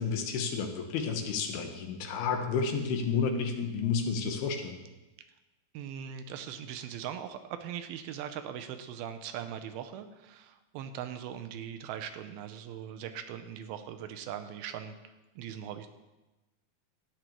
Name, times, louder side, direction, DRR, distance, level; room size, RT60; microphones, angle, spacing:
voice 1, 0.0-4.8, left 5 dB, 85° left, 5 dB, 2.9 m, -31 dB
voice 2, 5.7-15.0 15.4-15.9, right 9 dB, 80° right, 9 dB, 2.5 m, -40 dB
13.0 x 9.2 x 3.0 m, 1.1 s
omnidirectional pair, 4.4 m